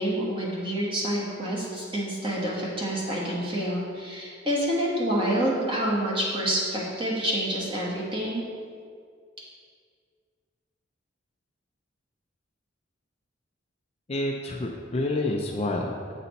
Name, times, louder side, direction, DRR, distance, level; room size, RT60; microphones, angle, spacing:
voice 1, 0.0-8.5, equal, 25° right, -4 dB, 1.2 m, -28 dB
voice 2, 14.1-16.2, left 2 dB, 30° left, 1 dB, 0.4 m, -28 dB
8.1 x 4.3 x 4.0 m, 2.1 s
head